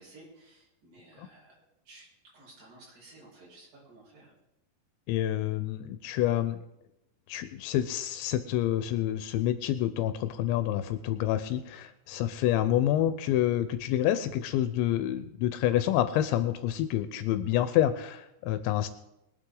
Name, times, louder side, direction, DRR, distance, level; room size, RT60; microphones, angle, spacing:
voice 1, 0.0-2.1 2.3-4.3, right 2 dB, 45° right, -6 dB, 6.7 m, -54 dB
voice 2, 5.1-6.6 7.3-18.9, left 12 dB, 85° left, 11 dB, 3.0 m, -28 dB
22.5 x 8.9 x 3.9 m, 0.87 s
omnidirectional pair, 5.2 m